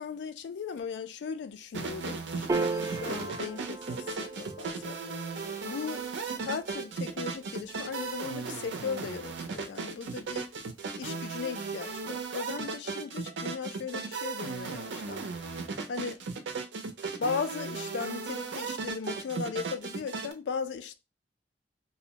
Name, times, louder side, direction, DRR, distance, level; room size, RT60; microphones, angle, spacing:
voice 1, 0.0-5.0 5.6-6.1 6.4-10.5 11.0-15.2 15.9-16.2 17.2-20.9, left 6 dB, 70° left, 0.3 m, -37 dB
sound 1, 1.7-20.3, right 4 dB, 90° right, 0.5 m, -36 dB
Piano, 2.5-9.1, right 3 dB, 20° right, 0.3 m, -38 dB
2.6 x 2.0 x 2.8 m
head